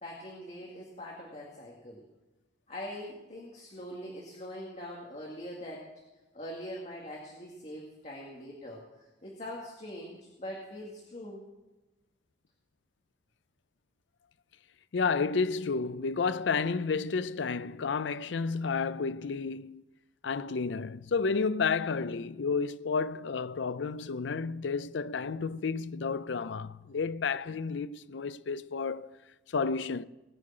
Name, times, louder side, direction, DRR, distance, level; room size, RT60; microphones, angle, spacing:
voice 1, 0.0-2.0 2.7-5.9 6.3-11.4, equal, 35° left, 2.1 m, -43 dB
voice 2, 14.9-19.8 20.2-29.1 29.5-30.0, left 5 dB, 75° left, 0.5 m, -31 dB
19.5 x 6.6 x 8.7 m
head